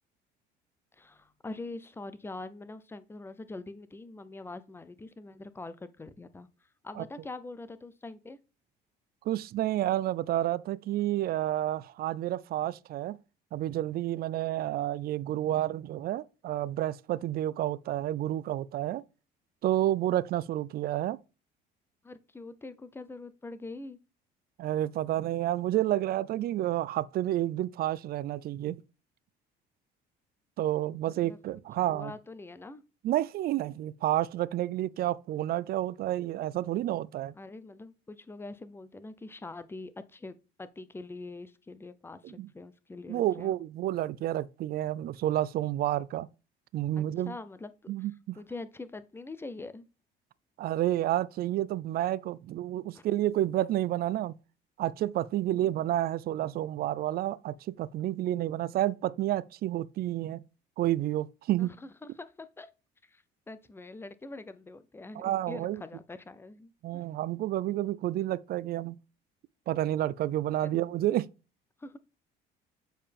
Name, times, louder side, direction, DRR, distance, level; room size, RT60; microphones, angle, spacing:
voice 1, 0.9-8.4 22.0-24.0 31.1-31.4 31.9-32.8 37.3-43.6 47.0-48.1 48.3-49.9 52.9-53.0 55.5-55.8 61.6-62.7 63.0-67.0 67.7-68.0 70.6-71.0 71.8-72.0, left 2 dB, 10° left, 0.6 m, -44 dB
voice 2, 9.3-13.2 13.5-19.0 19.6-21.2 24.6-28.8 30.6-32.1 33.0-37.3 42.2-42.5 43.1-46.3 46.7-47.3 47.9-48.4 50.6-54.3 54.8-60.4 60.8-61.7 65.2-65.8 66.8-69.0 69.7-71.3, right 13 dB, 55° right, 0.4 m, -30 dB
7.3 x 4.6 x 3.4 m
cardioid pair, 105°, 19 cm